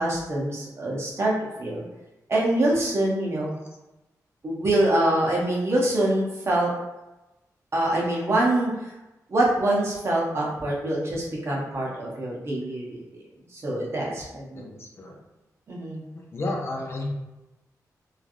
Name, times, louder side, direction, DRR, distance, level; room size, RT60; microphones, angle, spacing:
voice 1, 0.0-1.3 1.6-1.8 2.3-3.6 4.4-6.7 7.7-8.9 9.3-13.2 13.5-14.7 15.7-16.0, right 1 dB, 45° right, -4 dB, 0.8 m, -25 dB
voice 2, 14.5-15.2 16.1-17.1, left 2 dB, 40° left, 0 dB, 0.4 m, -32 dB
3.1 x 2.3 x 2.5 m, 1.0 s
wide cardioid pair, 160°, 6 cm